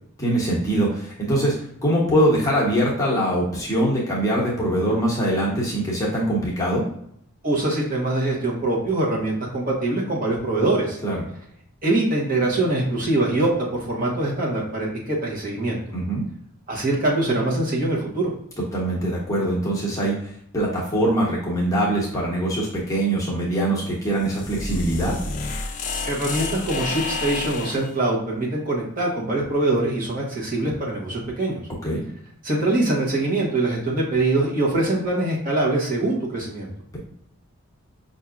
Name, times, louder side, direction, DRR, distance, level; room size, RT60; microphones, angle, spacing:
voice 1, 0.2-1.5 1.8-6.9 11.0-11.2 15.9-16.2 18.7-20.1 20.5-25.2 31.8-32.0, right 1 dB, 15° left, -5 dB, 1.0 m, -22 dB
voice 2, 7.4-11.0 11.8-15.8 16.7-18.3 26.1-31.6 32.4-36.7, right 2 dB, 40° right, -3 dB, 1.1 m, -23 dB
sound 1, 24.1-27.9, left 3 dB, 35° left, 0.4 m, -30 dB
5.7 x 2.7 x 2.4 m, 0.69 s
head